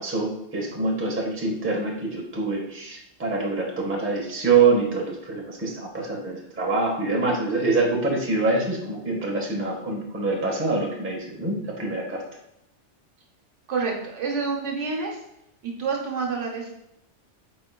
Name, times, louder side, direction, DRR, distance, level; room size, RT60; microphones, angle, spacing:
voice 1, 0.0-12.2, right 3 dB, 15° right, -2 dB, 0.6 m, -25 dB
voice 2, 13.7-15.2 15.6-16.7, right 4 dB, 80° right, -1 dB, 1.1 m, -28 dB
4.4 x 4.0 x 2.2 m, 0.82 s
omnidirectional pair, 1.2 m